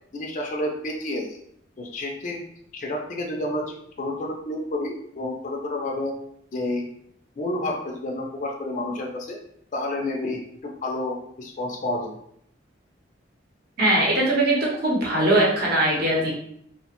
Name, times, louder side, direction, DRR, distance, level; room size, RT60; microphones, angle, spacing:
voice 1, 0.1-1.4 1.8-2.4 2.7-6.1 6.5-6.8 7.4-9.4 9.7-12.1, left 1 dB, 40° left, 0 dB, 0.4 m, -30 dB
voice 2, 13.8-14.6 14.8-16.3, right 1 dB, 50° right, -4 dB, 0.8 m, -20 dB
2.8 x 2.1 x 2.8 m, 0.70 s
head